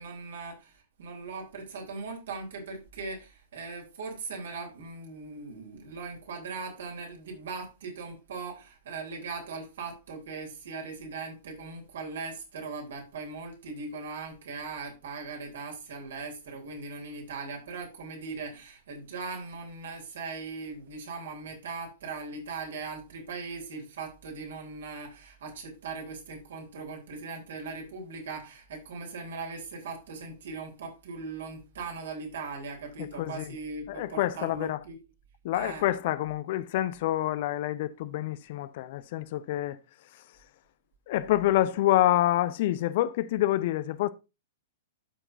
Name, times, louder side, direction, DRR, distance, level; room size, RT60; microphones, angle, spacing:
voice 1, 0.0-35.0 35.5-35.8, right 4 dB, 60° right, 3.1 m, -39 dB
voice 2, 33.0-33.5 33.9-34.8 35.4-39.8 41.1-44.1, left 14 dB, 50° left, 0.6 m, -27 dB
12.0 x 5.9 x 2.6 m
figure-of-eight pair, 105°, 0 cm